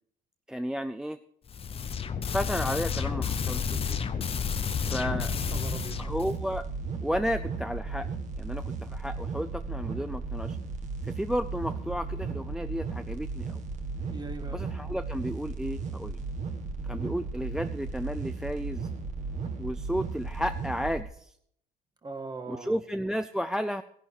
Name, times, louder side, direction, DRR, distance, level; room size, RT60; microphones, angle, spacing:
voice 1, 0.5-1.2 2.3-4.0 4.8-5.3 6.0-6.7 7.0-8.1 8.4-10.6 11.2-13.6 14.5-16.2 16.8-18.9 19.6-21.3 22.5-23.8, equal, 5° right, 10 dB, 0.4 m, -33 dB
sound 1, 1.5-6.4, left 6 dB, 35° left, 0.9 m, -31 dB
voice 2, 4.7-5.2 5.5-6.0 14.0-14.6 22.0-22.8, right 3 dB, 25° right, 7 dB, 1.7 m, -41 dB
sound 2, 5.0-21.0, right 4 dB, 45° right, 1.9 m, -35 dB
15.0 x 11.0 x 4.8 m, 0.67 s
cardioid pair, 110°, 17 cm